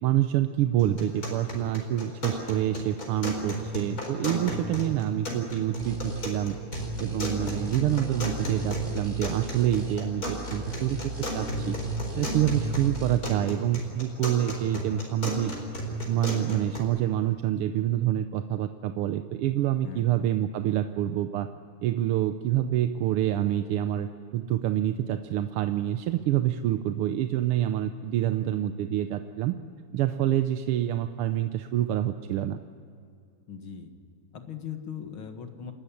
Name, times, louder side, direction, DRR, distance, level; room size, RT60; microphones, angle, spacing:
voice 1, 0.0-6.6 7.0-11.7 12.1-15.5 16.1-21.5 21.8-29.6 29.9-32.6, right 12 dB, 85° right, 9 dB, 1.7 m, -27 dB
sound 1, 0.8-16.8, equal, 40° left, 4.9 m, -34 dB
sound 2, 5.8-6.3 6.7-10.0 10.3-13.2, right 1 dB, 20° right, 3.1 m, -38 dB
voice 2, 33.5-33.9 34.3-35.7, left 8 dB, 70° left, 6 dB, 2.5 m, -39 dB
28.5 x 13.0 x 10.0 m, 2.4 s
omnidirectional pair, 2.4 m